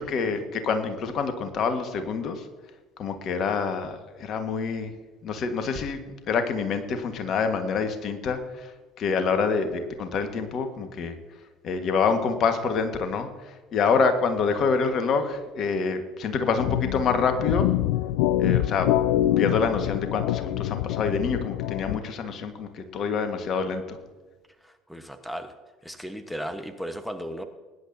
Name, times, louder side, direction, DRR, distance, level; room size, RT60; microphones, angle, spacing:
voice 1, 0.0-2.4 3.0-4.9 5.2-6.0 6.3-8.7 9.0-11.1 11.6-13.3 13.7-17.7 18.4-18.9 19.4-24.0, left 5 dB, 50° left, 7 dB, 1.6 m, -26 dB
sound 1, 16.6-22.0, left 14 dB, 65° left, 0.4 m, -25 dB
voice 2, 24.6-25.5 25.8-27.4, equal, 5° left, 8 dB, 1.2 m, -35 dB
21.0 x 10.5 x 2.8 m, 1.3 s
figure-of-eight pair, 60°, 0 cm